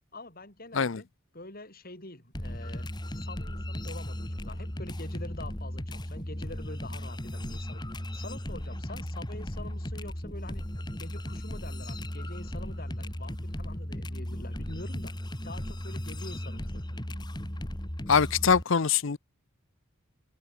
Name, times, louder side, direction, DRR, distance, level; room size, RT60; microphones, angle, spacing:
voice 1, 0.1-1.1 1.3-2.9 3.1-7.8 8.1-10.6 11.0-15.1 15.4-17.0, left 2 dB, 45° left, 5.6 m, -45 dB
sound 1, 2.3-18.6, left 1 dB, 20° left, 2.2 m, -36 dB
voice 2, 18.1-19.2, left 6 dB, 65° left, 0.7 m, -23 dB
open air
head